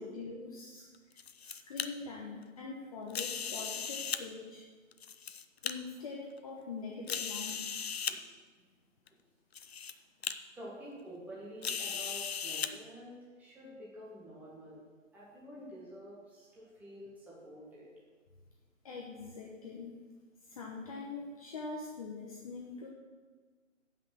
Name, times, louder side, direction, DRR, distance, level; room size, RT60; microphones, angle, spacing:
voice 1, 0.0-4.6 5.6-7.8 18.8-20.0 20.4-22.9, left 4 dB, 30° left, -1 dB, 1.0 m, -44 dB
sound 1, 0.9-1.9 3.1-4.2 4.9-5.7 6.4-6.5 7.1-8.2 9.1-9.2 9.5-9.9 10.2-10.3 11.6-12.7, left 7 dB, 55° left, 0.7 m, -37 dB
voice 2, 10.5-14.8 15.1-17.9, equal, 5° right, -6 dB, 1.5 m, -49 dB
14.0 x 5.9 x 6.1 m, 1.5 s
figure-of-eight pair, 150°, 39 cm